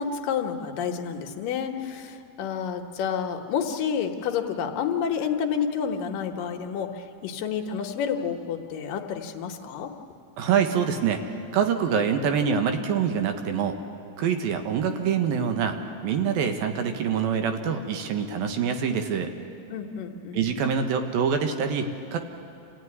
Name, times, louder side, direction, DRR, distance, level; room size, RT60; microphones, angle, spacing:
voice 1, 0.0-9.9 19.7-20.4, left 7 dB, 75° left, 4 dB, 2.7 m, -29 dB
voice 2, 10.4-11.2 11.5-13.8 14.2-15.8 16.0-19.3 20.3-22.2, right 7 dB, 80° right, 6 dB, 3.1 m, -25 dB
27.5 x 16.0 x 9.6 m, 2.6 s
omnidirectional pair, 4.1 m